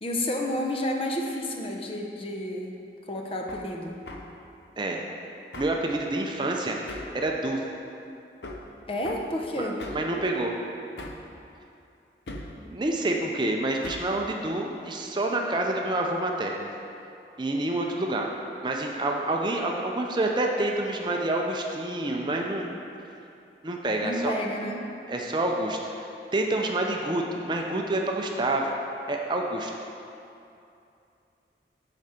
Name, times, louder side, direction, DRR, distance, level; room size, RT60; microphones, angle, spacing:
voice 1, 0.0-2.8 3.1-4.0 8.9-9.8 24.0-24.9, left 1 dB, 30° left, 1 dB, 0.6 m, -30 dB
Hammer, 3.5-3.7 4.1-4.3 5.5-5.8 6.9-7.2 8.4-8.7 9.0-9.3 9.8-10.1 11.0-11.3 12.3-12.6 13.8-14.2, left 2 dB, 75° left, 0.7 m, -39 dB
voice 2, 5.6-6.8 7.1-7.6 9.6-10.5 12.6-16.7 17.4-18.3 18.6-22.8 23.6-24.4 25.1-28.8 29.1-29.7, right 2 dB, 25° right, 1 dB, 0.5 m, -28 dB
9.7 x 5.0 x 4.3 m, 2.7 s
head